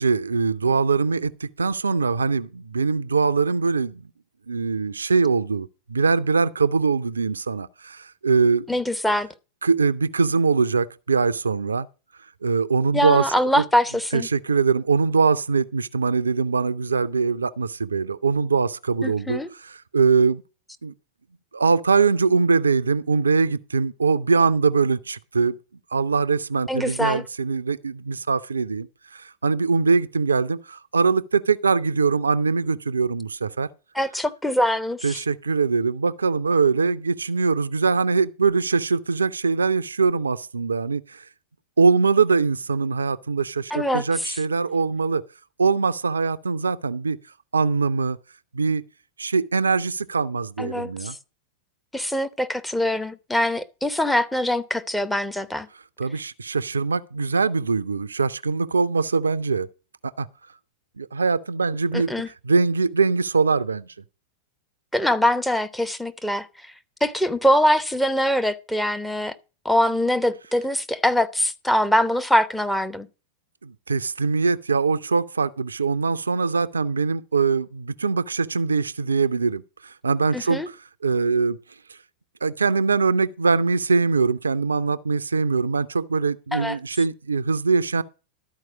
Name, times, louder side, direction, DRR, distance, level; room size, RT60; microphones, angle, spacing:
voice 1, 0.0-4.0 4.5-8.7 9.6-11.9 12.4-13.6 14.1-20.4 20.8-20.9 21.5-25.6 25.9-28.9 29.1-33.7 35.0-41.2 41.8-45.2 45.6-47.2 47.5-48.2 48.5-48.8 49.2-51.2 56.0-59.7 60.2-60.3 61.0-62.1 62.4-63.9 73.6-80.8 81.0-81.6 82.4-88.0, right 4 dB, 75° right, 0.4 m, -22 dB
voice 2, 8.7-9.3 12.9-14.3 19.0-19.5 26.7-27.2 33.9-35.2 43.7-44.4 50.6-51.2 51.9-55.7 61.9-62.3 64.9-66.5 67.0-69.4 69.6-73.1 80.3-80.7 86.5-86.8, equal, 5° left, 0.7 m, -23 dB
12.5 x 4.7 x 5.8 m
figure-of-eight pair, 90°, 0 cm